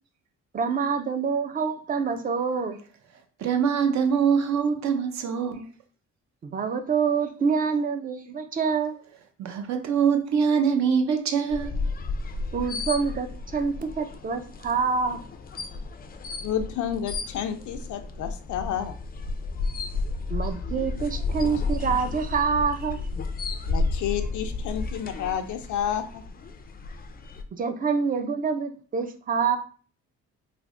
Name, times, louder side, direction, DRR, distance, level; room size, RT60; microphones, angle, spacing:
voice 1, 0.5-2.8 6.4-9.0 12.5-15.2 20.3-23.0 27.6-29.6, right 5 dB, 30° right, 0.4 m, -26 dB
voice 2, 3.4-5.7 9.4-11.8, right 6 dB, 65° right, 0.7 m, -23 dB
sound 1, 11.5-27.4, left 3 dB, 30° left, 0.4 m, -32 dB
voice 3, 16.4-18.9 23.7-26.2, left 9 dB, 85° left, 0.5 m, -30 dB
3.3 x 2.0 x 3.6 m
cardioid pair, 130°, 29 cm